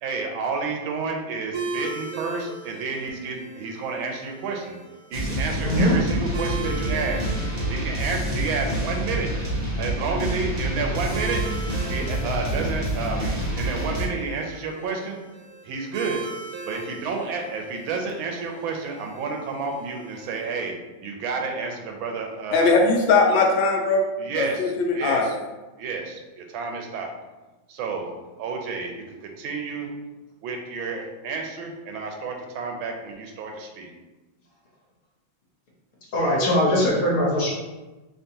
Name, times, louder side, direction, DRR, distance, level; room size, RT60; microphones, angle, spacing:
voice 1, 0.0-4.8 5.1-7.3 7.7-9.3 9.8-11.4 11.9-15.2 15.6-16.2 16.6-20.7 21.0-22.8 24.2-25.3 25.8-27.1 27.7-28.1 28.4-29.9 30.4-33.9, right 4 dB, 85° right, 2 dB, 1.5 m, -30 dB
sound 1, 1.5-20.7, right 3 dB, 60° right, 1.0 m, -39 dB
sound 2, 5.1-14.1, right 1 dB, 45° right, 0.5 m, -27 dB
voice 2, 22.5-24.1 24.4-25.3, left 3 dB, 75° left, 1 dB, 1.3 m, -20 dB
voice 3, 36.1-37.5, left 1 dB, 55° left, -5 dB, 1.3 m, -21 dB
4.4 x 2.9 x 2.8 m, 1.1 s
omnidirectional pair, 2.1 m